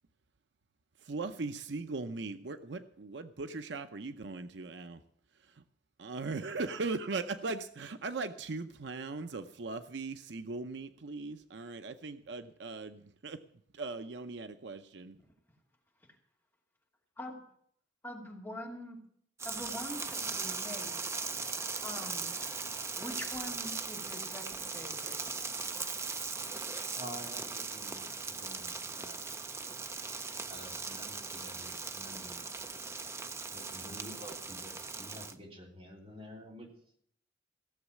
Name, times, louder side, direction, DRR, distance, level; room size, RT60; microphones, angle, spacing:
voice 1, 1.1-5.0 6.0-13.4 13.7-15.2, right 3 dB, 70° right, 9 dB, 0.7 m, -39 dB
voice 2, 18.0-19.0 19.4-20.9 21.8-22.3 23.0-25.2, left 1 dB, 10° left, -1 dB, 2.6 m, -44 dB
sound 1, 19.4-35.3, right 4 dB, 15° right, 0.5 m, -39 dB
voice 3, 26.9-29.3 30.5-32.7 33.5-36.7, equal, 30° right, -1 dB, 3.3 m, -49 dB
16.0 x 7.3 x 8.3 m, 0.65 s
head